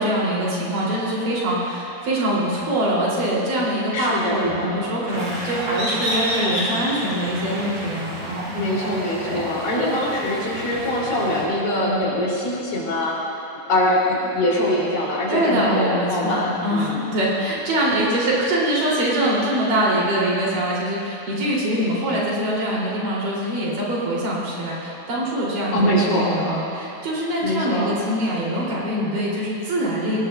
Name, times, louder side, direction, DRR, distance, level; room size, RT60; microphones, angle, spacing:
voice 1, 0.0-8.5 9.2-9.4 9.8-9.9 11.8-11.9 15.3-30.2, right 1 dB, 70° right, -6 dB, 5.1 m, -23 dB
voice 2, 3.9-4.8 8.5-13.1 13.7-17.2 25.7-26.3 27.4-28.0, left 1 dB, 75° left, -5 dB, 5.2 m, -23 dB
sound 1, 5.1-11.4, equal, 45° right, 4.9 m, -30 dB
25.0 x 18.0 x 2.5 m, 2.8 s
omnidirectional pair, 4.0 m